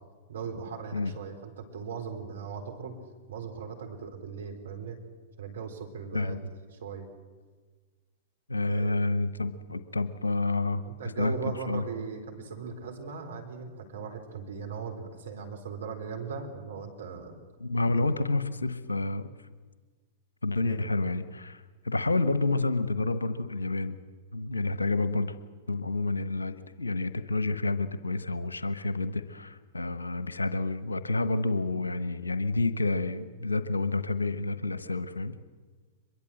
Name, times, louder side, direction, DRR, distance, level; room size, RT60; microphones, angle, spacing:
voice 1, 0.3-3.0 3.3-5.0 5.4-6.4 6.8-7.1 8.7-8.9 10.9-17.4 18.0-18.1 20.6-20.8, right 5 dB, 70° right, 5 dB, 4.1 m, -38 dB
voice 2, 6.1-6.5 8.5-10.8 11.2-11.4 11.7-11.8 17.6-19.3 20.4-24.0 24.3-25.3 25.7-35.4, left 2 dB, 90° left, 12 dB, 1.1 m, -29 dB
23.5 x 22.5 x 7.8 m, 1.4 s
figure-of-eight pair, 100°, 0 cm